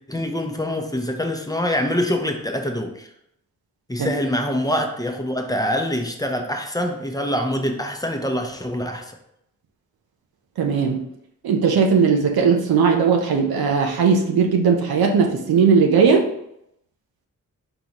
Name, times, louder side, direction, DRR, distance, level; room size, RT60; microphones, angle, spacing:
voice 1, 0.1-3.1 3.9-9.2, left 1 dB, 10° left, 4 dB, 0.7 m, -25 dB
voice 2, 10.6-11.0 11.4-16.3, right 5 dB, 85° right, 2 dB, 0.7 m, -18 dB
3.9 x 3.8 x 3.0 m, 0.77 s
cardioid pair, 50°, 35 cm